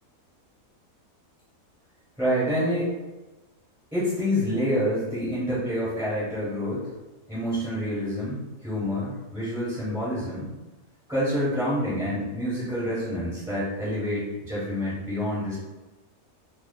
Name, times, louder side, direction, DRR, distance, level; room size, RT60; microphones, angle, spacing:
voice 1, 2.2-2.9 3.9-6.9 7.3-10.5 11.1-15.6, equal, 5° right, -10 dB, 0.7 m, -27 dB
2.7 x 2.3 x 3.6 m, 1.1 s
omnidirectional pair, 1.5 m